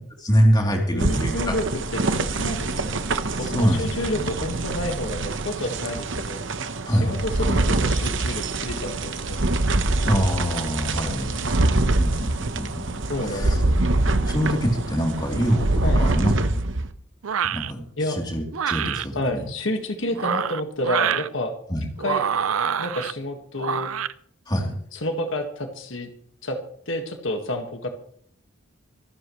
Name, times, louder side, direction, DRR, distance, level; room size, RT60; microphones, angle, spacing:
voice 1, 0.2-1.5 3.3-4.3 6.8-7.2 10.1-11.3 12.0-13.0 13.2-13.6 14.2-16.6 17.4-19.4 21.7-21.9 24.5-24.7, equal, 20° left, 0 dB, 3.3 m, -24 dB
voice 2, 0.9-1.7 1.9-3.1 3.4-6.4 6.9-9.6 11.2-11.5 13.1-13.8 15.8-16.1 18.0-18.2 19.2-21.6 22.0-22.2 22.8-23.9 24.9-26.1 26.4-26.6 26.9-27.9, left 1 dB, 70° left, 4 dB, 1.8 m, -29 dB
sound 1, 1.0-16.9, right 2 dB, 65° right, 1.0 m, -25 dB
sound 2, 17.2-17.7 18.5-19.1 20.1-21.3 22.0-23.1 23.6-24.1, right 8 dB, 90° right, 0.6 m, -26 dB
25.0 x 12.5 x 3.2 m, 0.62 s
head